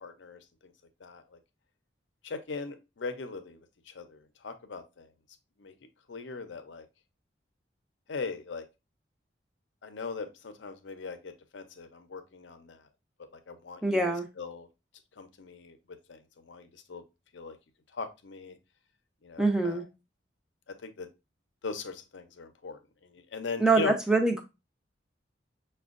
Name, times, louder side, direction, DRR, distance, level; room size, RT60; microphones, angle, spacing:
voice 1, 0.0-0.7 1.0-1.4 2.2-3.6 3.9-5.1 5.6-5.7 6.1-6.8 8.1-8.6 9.8-12.8 13.5-14.7 15.2-15.8 16.1-17.0 17.3-17.6 17.9-18.6 19.2-19.8 20.7-21.1 21.6-23.9, left 4 dB, 75° left, 8 dB, 0.5 m, -40 dB
voice 2, 13.8-14.3 19.4-19.8 23.6-24.4, right 3 dB, 5° right, 4 dB, 0.4 m, -24 dB
5.9 x 2.2 x 2.4 m, 0.25 s
head